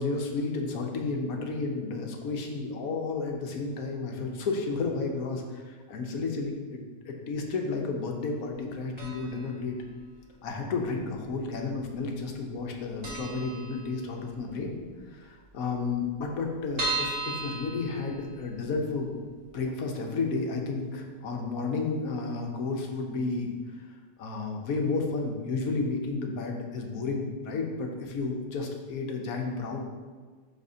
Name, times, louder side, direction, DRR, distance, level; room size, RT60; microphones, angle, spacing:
voice 1, 0.0-6.8 7.0-9.8 10.4-14.8 15.0-19.2 19.5-23.8 24.2-29.8, left 4 dB, 60° left, 2 dB, 1.2 m, -32 dB
sound 1, 9.0-9.5 9.8-9.9 10.8-11.5 11.8-11.9 12.2-12.3 12.7-12.8 13.0-14.3 14.7-14.8 15.1-15.2 15.4-15.5 16.0-18.6 19.1-19.2 19.5-19.6, right 3 dB, 45° right, 1.4 m, -35 dB
10.5 x 4.2 x 2.8 m, 1.5 s
omnidirectional pair, 1.8 m